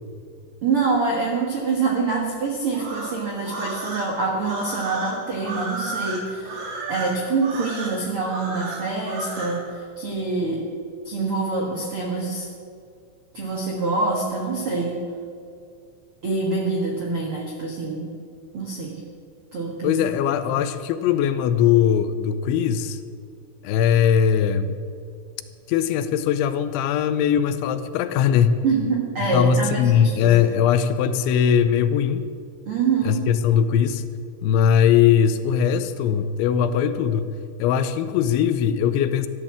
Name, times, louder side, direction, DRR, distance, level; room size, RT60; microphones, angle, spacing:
voice 1, 0.6-10.7 11.0-12.5 13.3-15.0 16.2-18.1 18.5-19.0 19.5-20.0 20.5-20.6 28.6-30.4 32.6-33.3, right 4 dB, 80° right, -1 dB, 1.2 m, -25 dB
sound 1, 2.7-9.6, right 3 dB, 60° right, 3.8 m, -33 dB
voice 2, 19.8-23.0 23.6-24.8 25.7-28.6 29.3-32.2 33.1-34.0 34.4-39.3, left 8 dB, 85° left, 11 dB, 3.0 m, -20 dB
14.5 x 11.0 x 7.3 m, 2.4 s
omnidirectional pair, 5.4 m